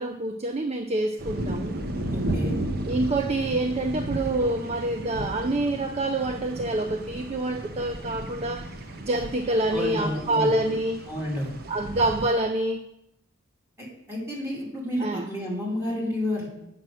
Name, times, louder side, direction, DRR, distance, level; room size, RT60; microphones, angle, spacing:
voice 1, 0.0-1.8 2.9-8.7 9.0-11.0 11.7-12.8 15.0-15.3, right 2 dB, 30° right, 7 dB, 0.5 m, -26 dB
sound 1, 1.2-12.3, right 1 dB, 50° right, 0.9 m, -34 dB
voice 2, 2.1-2.6 9.7-10.5 11.1-11.5 13.8-16.5, left 1 dB, 15° right, -4 dB, 3.0 m, -30 dB
8.7 x 6.0 x 6.3 m, 0.82 s
head